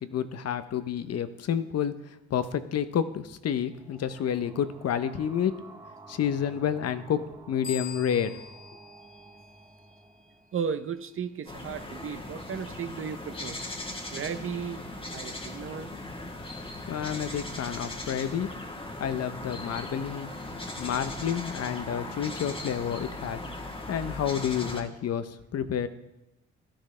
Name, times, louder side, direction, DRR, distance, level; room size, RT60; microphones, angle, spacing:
voice 1, 0.0-5.5 6.1-8.4 16.9-18.5 19.0-20.3 20.8-25.9, left 8 dB, 55° left, 0.7 m, -30 dB
sound 1, 3.6-11.1, right 3 dB, 10° right, 0.8 m, -51 dB
sound 2, 7.6-10.1, left 8 dB, 70° left, 1.6 m, -43 dB
voice 2, 10.5-13.6 14.1-14.8 15.1-15.9, right 7 dB, 45° right, 0.7 m, -35 dB
sound 3, 11.5-24.8, left 1 dB, 15° left, 1.5 m, -38 dB
12.0 x 10.0 x 3.3 m
cardioid pair, 90°, 30 cm